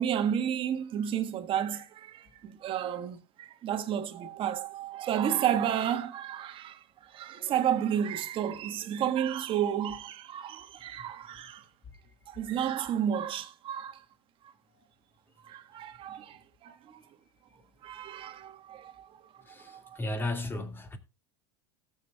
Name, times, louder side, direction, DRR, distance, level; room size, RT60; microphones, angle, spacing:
voice 1, 0.0-11.6 12.3-14.0 15.4-17.0 17.8-19.1 19.7-20.0, right 9 dB, 40° right, 1.5 m, -32 dB
voice 2, 19.5-21.0, left 2 dB, 15° left, 2.1 m, -34 dB
18.0 x 7.3 x 2.3 m
hypercardioid pair, 95°, 13 cm